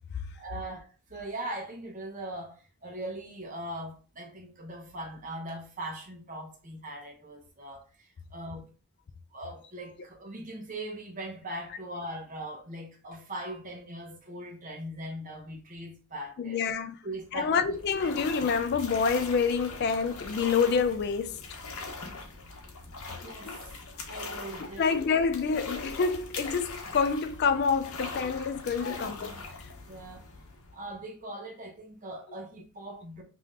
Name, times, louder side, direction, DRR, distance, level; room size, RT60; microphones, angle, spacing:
voice 1, 0.3-8.7 9.3-17.5 18.0-18.1 22.5-22.6 23.1-23.7 24.1-24.9 28.8-29.4 29.9-30.3 30.7-33.2, right 1 dB, 35° right, 0.8 m, -40 dB
voice 2, 16.4-17.0 17.3-21.6 24.8-29.3, left 5 dB, 45° left, 0.3 m, -27 dB
sound 1, 17.2-31.0, left 3 dB, 80° left, 0.9 m, -41 dB
5.4 x 2.7 x 2.4 m
head